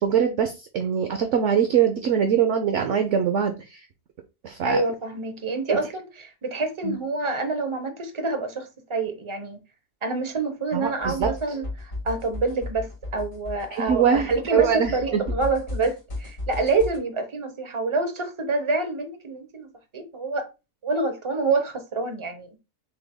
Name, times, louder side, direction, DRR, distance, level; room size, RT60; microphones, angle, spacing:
voice 1, 0.0-3.8 4.4-4.8 5.7-5.8 6.8-7.0 10.7-11.3 13.7-15.2, right 8 dB, 65° right, 0.8 m, -23 dB
voice 2, 4.6-9.6 10.0-20.5 20.8-22.6, right 3 dB, 30° right, 0.6 m, -27 dB
sound 1, 11.0-17.0, left 2 dB, 55° left, 2.9 m, -34 dB
6.9 x 3.4 x 2.2 m
omnidirectional pair, 1.7 m